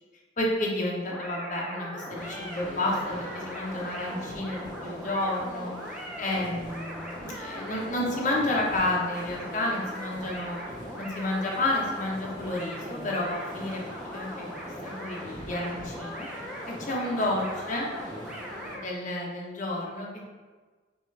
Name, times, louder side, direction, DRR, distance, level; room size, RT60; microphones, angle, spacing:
voice 1, 0.4-5.7 6.2-10.6 11.0-13.8 14.1-14.5 14.8-16.3 16.8-17.9 18.7-20.2, left 1 dB, 40° left, -3 dB, 0.9 m, -30 dB
sound 1, 1.0-18.9, equal, 5° right, 0.5 m, -40 dB
sound 2, 2.1-18.8, equal, 45° right, 1.4 m, -45 dB
5.9 x 2.5 x 3.2 m, 1.4 s
head